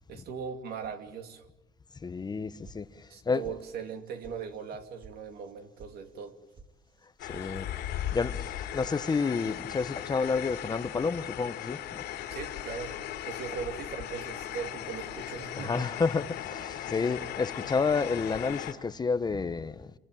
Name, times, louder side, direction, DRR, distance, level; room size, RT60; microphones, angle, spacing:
voice 1, 0.1-1.5 3.1-6.4 12.3-13.0 13.3-15.9, right 6 dB, 65° right, 2.7 m, -39 dB
voice 2, 2.0-3.5 7.2-12.0 15.6-19.9, left 4 dB, 25° left, 0.9 m, -30 dB
sound 1, 2.6-3.2 3.4-4.0 4.2-4.3 4.7-5.1 5.4-5.9 6.2-6.7 7.0-7.5 7.7-8.2 8.5-9.0, right 4 dB, 30° right, 2.3 m, -51 dB
sound 2, 7.2-18.7, left 11 dB, 80° left, 3.2 m, -38 dB
28.0 x 23.5 x 9.1 m
cardioid pair, 110°, 17 cm